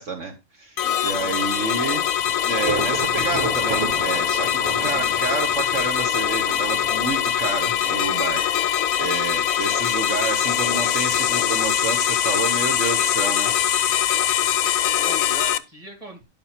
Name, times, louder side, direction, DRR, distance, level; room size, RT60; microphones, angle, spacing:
voice 1, 0.0-2.0 2.4-13.6, right 4 dB, 60° right, 3 dB, 1.6 m, -29 dB
sound 1, 0.8-15.6, left 10 dB, 85° left, 1.1 m, -22 dB
voice 2, 1.1-1.5 8.5-8.7 14.7-16.2, equal, 25° right, 3 dB, 2.5 m, -40 dB
Thunder / Rain, 1.4-15.0, right 3 dB, 80° right, 1.7 m, -36 dB
11.5 x 5.4 x 4.3 m, 0.24 s
omnidirectional pair, 1.4 m